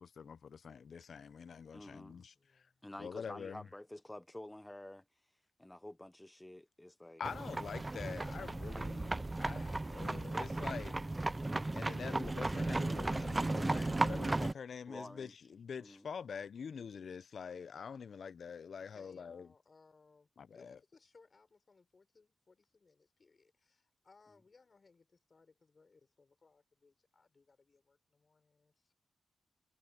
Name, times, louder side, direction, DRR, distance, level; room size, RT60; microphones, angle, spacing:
voice 1, 0.0-2.7 3.0-3.7 7.2-11.3 11.7-19.5 20.4-20.8, left 6 dB, 70° left, 0.7 m, -46 dB
voice 2, 1.7-2.3 2.8-5.0 5.6-7.2 14.9-15.3 15.8-16.1, left 1 dB, 10° left, 0.8 m, -50 dB
voice 3, 2.3-2.8 18.8-28.9, left 4 dB, 45° left, 6.4 m, -66 dB
sound 1, 7.2-14.5, right 2 dB, 25° right, 0.3 m, -35 dB
cardioid pair, 65°, 0 cm